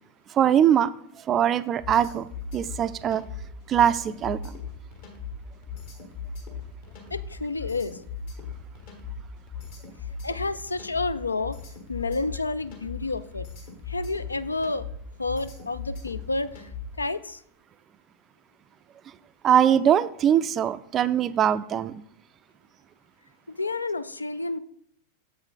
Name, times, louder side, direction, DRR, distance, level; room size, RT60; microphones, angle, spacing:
voice 1, 0.3-0.9 1.3-2.3 2.5-3.2 3.7-4.5 19.4-22.0, right 9 dB, 30° right, 14 dB, 0.3 m, -22 dB
sound 1, 1.8-17.0, left 5 dB, 50° left, 1.5 m, -38 dB
voice 2, 7.1-8.0 10.2-11.6 11.9-13.5 13.9-14.9 15.2-16.7 17.0-17.4 23.5-24.6, left 3 dB, 80° left, 15 dB, 0.3 m, -30 dB
7.1 x 5.5 x 3.8 m, 0.68 s
figure-of-eight pair, 90°, 0 cm